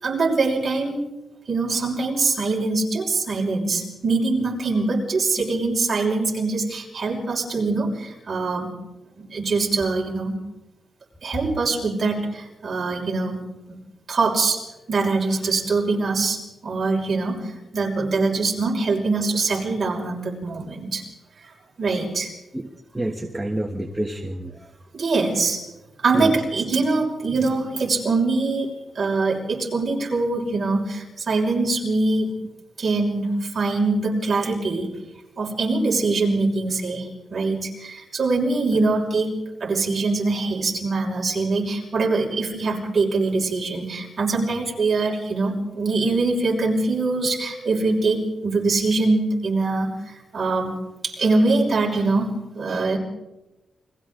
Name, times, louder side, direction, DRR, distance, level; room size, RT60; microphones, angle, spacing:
voice 1, 0.0-1.1 1.5-8.7 9.2-10.3 11.2-13.4 13.7-13.8 14.1-14.6 14.9-21.0 21.8-22.3 24.9-25.6 26.0-32.3 32.8-34.9 35.4-39.3 39.6-50.7 51.0-53.0, right 3 dB, 40° right, -2 dB, 5.8 m, -23 dB
voice 2, 22.9-24.6 26.1-26.3 47.5-47.8, right 1 dB, 10° right, 1 dB, 1.4 m, -28 dB
29.5 x 23.5 x 3.9 m, 1.0 s
wide cardioid pair, 160°, 0 cm